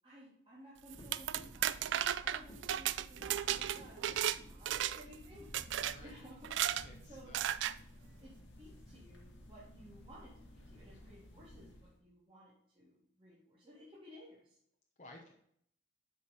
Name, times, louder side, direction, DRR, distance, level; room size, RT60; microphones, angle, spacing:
voice 1, 0.0-5.5 5.8-6.4 7.1-7.4 8.2-8.3 8.6-14.6, equal, 30° right, -7 dB, 2.1 m, -57 dB
sound 1, 0.9-6.1, equal, 20° left, 1.6 m, -54 dB
sound 2, 0.9-4.4 4.7-5.1 5.5-5.9 6.4-6.8 7.3-7.7, right 11 dB, 80° right, 0.3 m, -34 dB
sound 3, 5.2-12.0, left 1 dB, 80° left, 2.1 m, -56 dB
voice 2, 5.8-6.1 6.8-7.4 15.0-15.3, left 2 dB, 40° left, 1 dB, 0.9 m, -55 dB
6.8 x 5.0 x 5.2 m, 0.68 s
head